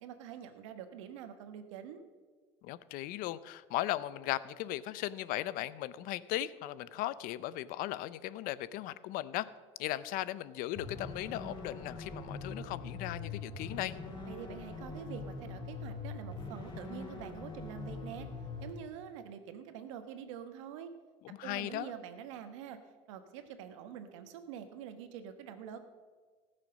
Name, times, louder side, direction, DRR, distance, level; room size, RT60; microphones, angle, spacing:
voice 1, 0.0-2.1 14.3-18.3 18.6-20.9 21.4-22.8 23.1-25.8, right 9 dB, 90° right, 8 dB, 1.2 m, -46 dB
voice 2, 2.6-9.5 9.8-14.0 21.2-21.9, left 14 dB, 65° left, 17 dB, 0.6 m, -37 dB
sound 1, 10.8-18.7, left 3 dB, 30° left, 3.3 m, -43 dB
19.0 x 6.6 x 5.2 m, 1.5 s
supercardioid pair, 95°, 15 cm